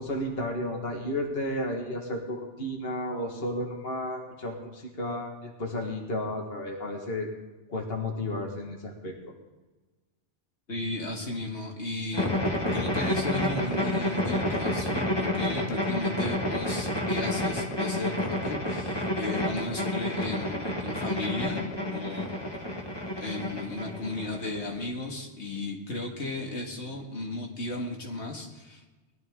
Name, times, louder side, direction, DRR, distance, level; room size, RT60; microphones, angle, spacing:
voice 1, 0.0-7.3 7.7-9.3, left 1 dB, 60° left, 1 dB, 1.9 m, -33 dB
voice 2, 10.7-12.3 12.7-22.4 23.2-28.8, left 2 dB, 75° left, 0 dB, 2.1 m, -35 dB
sound 1, 12.1-24.9, left 1 dB, 20° left, 1.9 m, -29 dB
20.5 x 13.0 x 3.7 m, 1.2 s
omnidirectional pair, 1.1 m